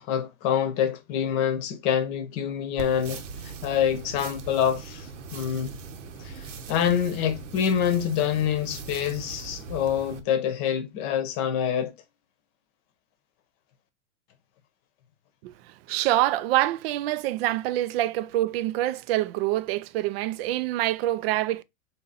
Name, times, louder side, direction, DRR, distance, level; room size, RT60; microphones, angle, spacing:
voice 1, 0.0-5.8 6.2-11.9, left 9 dB, 40° left, 0.9 m, -26 dB
sound 1, 2.8-10.2, right 5 dB, 70° right, 1.1 m, -40 dB
voice 2, 15.9-21.6, right 15 dB, 50° right, 0.5 m, -26 dB
4.1 x 2.7 x 4.0 m
hypercardioid pair, 110°, 40 cm